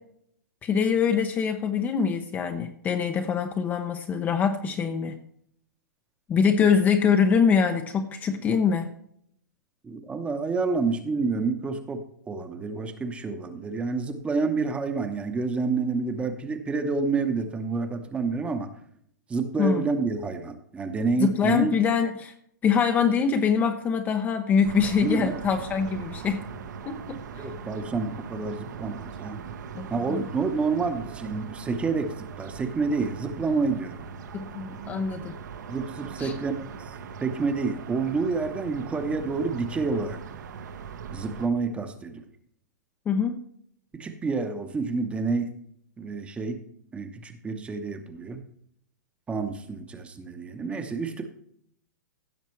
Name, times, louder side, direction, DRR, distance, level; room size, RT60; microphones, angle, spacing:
voice 1, 0.6-5.2 6.3-8.9 19.6-19.8 21.2-22.3 22.6-26.5 26.9-27.5 29.7-30.3 34.3-35.4 36.2-36.3 43.1-43.4, left 6 dB, 15° left, 6 dB, 0.6 m, -24 dB
voice 2, 9.8-18.7 19.3-21.8 25.0-25.3 27.4-29.4 29.9-34.0 35.7-36.7 37.2-40.2 41.1-42.2 43.9-45.5 46.0-46.6 46.9-48.4 49.3-51.3, right 4 dB, 10° right, 8 dB, 0.9 m, -28 dB
sound 1, 24.6-41.5, right 6 dB, 70° right, 1.2 m, -40 dB
16.0 x 6.5 x 3.2 m, 0.67 s
hypercardioid pair, 150°, 10 cm